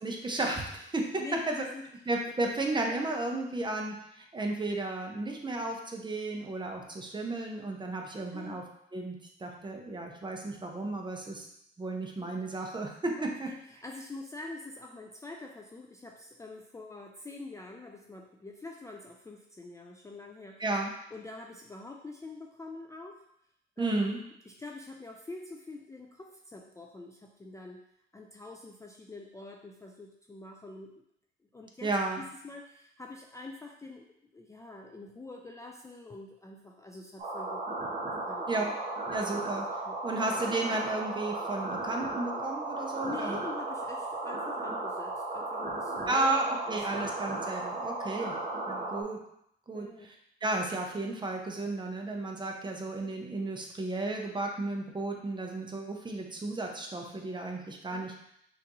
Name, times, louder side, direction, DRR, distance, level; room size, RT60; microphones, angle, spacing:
voice 1, 0.0-1.6 2.1-8.6 8.9-11.5 11.8-13.5 20.6-20.9 23.8-24.2 31.8-32.2 38.5-38.7 39.1-39.7 40.0-43.4 46.1-48.3 48.7-49.2 49.7-50.2 50.4-58.1, right 2 dB, 25° right, 1 dB, 0.8 m, -33 dB
voice 2, 1.2-1.9 8.3-8.6 13.2-20.6 21.1-23.2 23.8-27.8 28.1-30.9 31.5-34.1 34.3-38.8 39.9-40.4 43.0-47.1 48.1-48.4 48.8-49.1 49.7-50.1 57.9-58.1, left 2 dB, 15° left, 1 dB, 0.4 m, -45 dB
sound 1, 37.2-49.0, right 2 dB, 40° right, 1.2 m, -35 dB
5.7 x 2.6 x 3.0 m, 0.74 s
cardioid pair, 90°, 20 cm